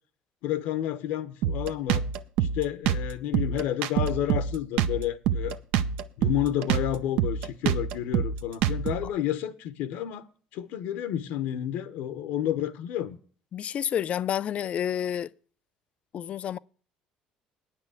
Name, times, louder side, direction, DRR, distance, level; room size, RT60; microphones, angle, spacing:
voice 1, 0.4-2.1 2.4-5.6 6.2-13.2, left 11 dB, 80° left, 0.9 m, -30 dB
Drum kit, 1.4-9.1, right 8 dB, 80° right, 0.6 m, -26 dB
voice 2, 13.5-15.3 16.1-16.6, left 9 dB, 50° left, 0.4 m, -29 dB
9.5 x 5.9 x 8.4 m
supercardioid pair, 90°, 3 cm